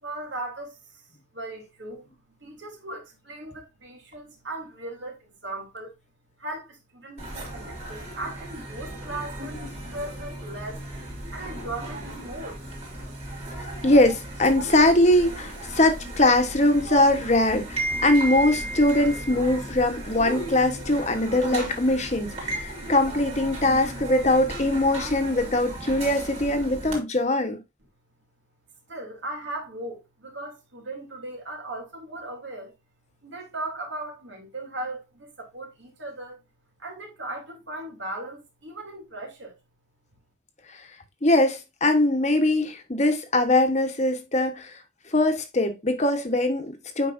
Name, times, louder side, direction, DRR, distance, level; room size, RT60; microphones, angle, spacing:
voice 1, 0.0-1.1 1.3-2.1 2.4-6.0 6.4-9.6 9.9-10.8 11.3-12.6 28.9-32.7 33.2-36.4 36.8-39.6, right 2 dB, 80° right, 2.9 m, -37 dB
sound 1, 7.2-27.0, right 1 dB, 35° right, 3.1 m, -35 dB
voice 2, 13.6-27.6 41.2-44.7 45.1-47.1, left 1 dB, 35° left, 1.2 m, -22 dB
8.6 x 5.2 x 2.6 m
head